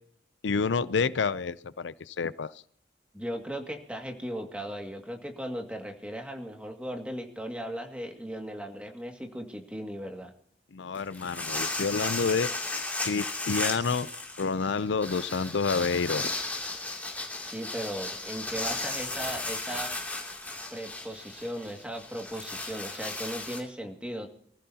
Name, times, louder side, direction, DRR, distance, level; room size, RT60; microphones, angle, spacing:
voice 1, 0.4-2.6 10.7-12.5 13.0-14.1 14.4-16.3, left 5 dB, 90° left, 16 dB, 0.6 m, -28 dB
voice 2, 3.1-10.3 17.4-19.9 20.7-24.3, equal, 5° right, 3 dB, 2.1 m, -37 dB
sound 1, 10.9-23.6, left 2 dB, 10° left, 2.7 m, -35 dB
24.0 x 15.0 x 2.8 m, 0.63 s
head